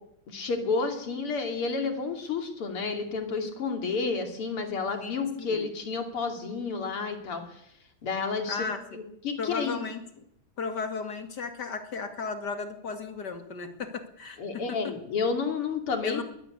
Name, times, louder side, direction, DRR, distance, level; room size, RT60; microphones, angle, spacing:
voice 1, 0.3-7.6 8.0-8.7 8.9-9.8 14.4-16.2, left 4 dB, 85° left, 5 dB, 3.8 m, -30 dB
voice 2, 5.0-5.7 8.5-8.8 9.4-10.3 10.6-14.8 16.0-16.2, left 5 dB, 50° left, 7 dB, 2.8 m, -35 dB
22.0 x 13.0 x 9.9 m, 0.76 s
omnidirectional pair, 2.4 m